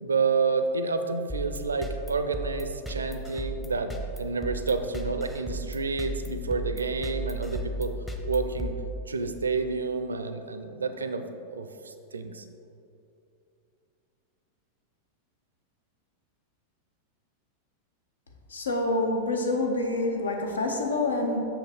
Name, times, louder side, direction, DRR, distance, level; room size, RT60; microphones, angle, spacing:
voice 1, 0.0-7.9 8.2-8.7 9.1-11.3 11.5-12.4, right 4 dB, 75° right, 9 dB, 0.4 m, -29 dB
sound 1, 1.3-9.5, right 2 dB, 5° left, 0.8 m, -35 dB
voice 2, 18.5-21.4, left 2 dB, 70° left, 2 dB, 0.9 m, -27 dB
6.8 x 5.7 x 4.5 m, 2.7 s
figure-of-eight pair, 90°, 0 cm